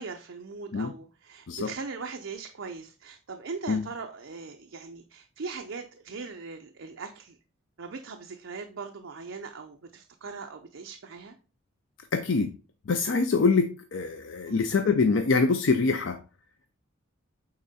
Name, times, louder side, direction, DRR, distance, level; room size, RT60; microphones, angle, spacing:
voice 1, 0.0-7.4 7.8-11.3 14.5-14.6, right 4 dB, 70° right, 0.6 m, -40 dB
voice 2, 12.1-12.6 12.9-16.2, left 4 dB, 65° left, 0.5 m, -24 dB
8.7 x 3.7 x 4.1 m
head